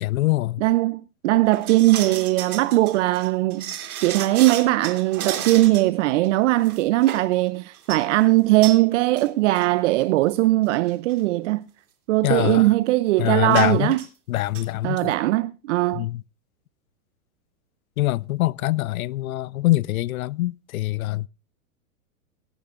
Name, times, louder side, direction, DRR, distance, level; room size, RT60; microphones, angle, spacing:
voice 1, 0.0-0.6 12.2-12.7 13.2-13.9 14.3-15.1 15.9-16.2 18.0-21.3, left 17 dB, 65° left, 0.6 m, -24 dB
voice 2, 0.6-3.6 4.0-11.6 12.1-14.0 14.8-16.1, right 18 dB, 50° right, 0.7 m, -20 dB
Padlock Chain Lock Unlock, 1.5-6.0 6.2-6.3 6.6-7.3 7.7-8.0 8.6-8.8 9.2-9.3 9.5-9.7 10.4-10.5 10.9-11.1 13.5-14.1 14.4-14.6 15.0-15.1, right 10 dB, 70° right, 3.1 m, -33 dB
18.0 x 14.0 x 2.5 m
hypercardioid pair, 120°, 45 cm